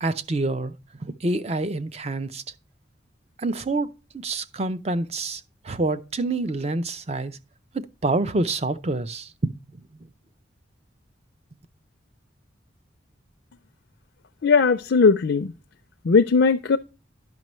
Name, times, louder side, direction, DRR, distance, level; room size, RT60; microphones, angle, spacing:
voice 1, 0.0-0.7 1.0-2.4 3.4-7.4 7.7-9.8, right 2 dB, 35° right, 0.5 m, -27 dB
voice 2, 14.4-15.5 16.0-16.8, left 4 dB, 65° left, 0.5 m, -18 dB
10.5 x 6.0 x 3.1 m
head